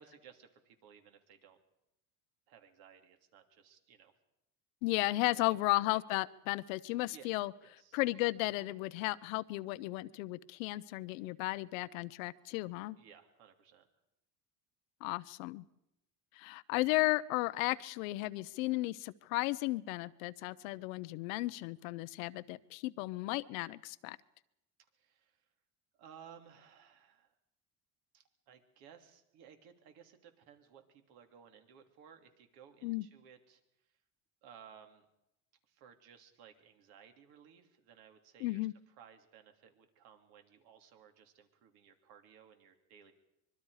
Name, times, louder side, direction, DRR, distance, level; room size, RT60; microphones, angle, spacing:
voice 1, 0.0-1.6 2.5-4.1 5.3-6.0 7.0-7.3 7.6-8.0 13.0-13.9 25.0-25.4 25.9-27.3 28.1-33.6 34.4-35.0 35.7-38.7 39.0-43.1, right 8 dB, 65° right, 6 dB, 3.0 m, -59 dB
voice 2, 4.8-7.5 7.9-13.0 15.0-15.6 16.3-24.2 32.8-33.0 38.4-38.7, left 20 dB, 85° left, 16 dB, 0.9 m, -34 dB
25.0 x 22.5 x 4.9 m, 0.84 s
cardioid pair, 135°, 39 cm